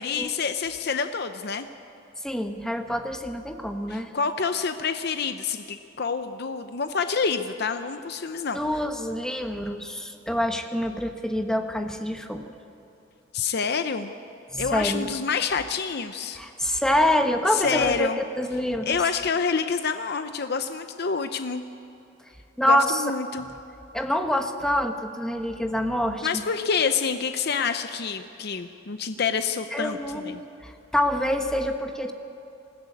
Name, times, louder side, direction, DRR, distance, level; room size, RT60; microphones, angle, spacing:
voice 1, 0.0-1.7 3.9-8.6 13.3-14.1 14.6-16.4 17.5-18.2 18.9-21.6 22.6-23.5 26.2-30.0 30.2-30.4, left 5 dB, 55° left, 8 dB, 0.6 m, -27 dB
voice 2, 2.2-4.1 8.5-12.5 14.5-15.1 16.3-19.0 22.6-23.0 23.9-26.4 29.7-30.4 30.6-32.1, left 1 dB, 5° left, 5 dB, 1.1 m, -26 dB
20.5 x 16.0 x 8.4 m, 2.9 s
head